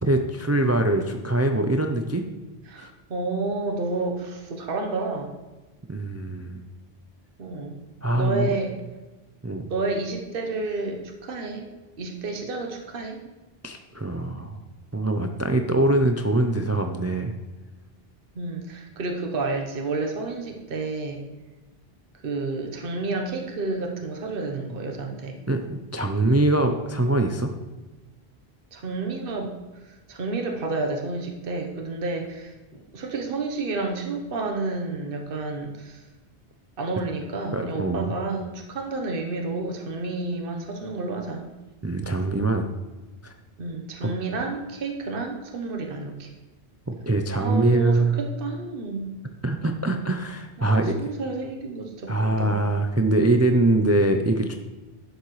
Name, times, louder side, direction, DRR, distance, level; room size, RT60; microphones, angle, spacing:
voice 1, 0.0-2.2 2.8-2.9 5.9-6.6 8.0-8.5 9.4-9.7 13.6-14.6 14.9-17.3 25.5-27.5 37.5-38.1 41.8-42.7 43.2-43.3 44.0-44.1 46.9-48.2 49.4-51.0 52.1-54.6, right 2 dB, 25° right, 5 dB, 0.4 m, -23 dB
voice 2, 2.7-5.3 7.4-7.8 8.1-8.7 9.7-11.7 12.0-13.2 18.4-21.2 22.2-25.4 28.7-29.5 29.9-36.0 36.8-41.5 43.6-46.3 47.4-49.1 50.7-52.1 52.4-52.6, right 3 dB, 60° right, 3 dB, 1.2 m, -30 dB
11.0 x 7.2 x 3.2 m, 1.2 s
omnidirectional pair, 1.0 m